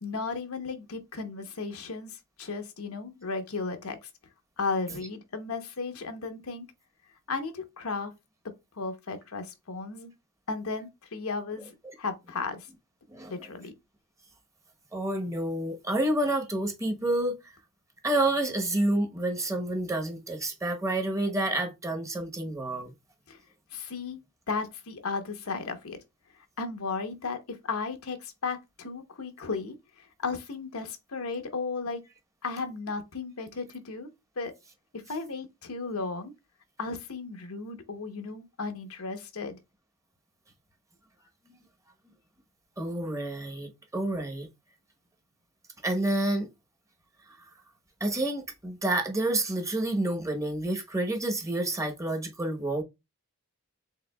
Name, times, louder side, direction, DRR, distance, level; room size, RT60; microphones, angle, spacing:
voice 1, 0.0-4.1 4.6-6.7 7.3-8.1 8.7-10.1 10.5-12.7 13.3-13.7 23.3-23.4 23.7-24.2 24.5-26.0 26.6-32.0 32.4-34.1 34.4-34.5 34.9-36.3 36.8-39.6, left 4 dB, 75° left, 0.8 m, -35 dB
voice 2, 14.9-17.5 18.0-22.9 41.5-41.6 42.8-44.5 45.8-46.5 48.0-52.8, right 1 dB, 15° right, 0.9 m, -29 dB
4.8 x 3.6 x 2.2 m
head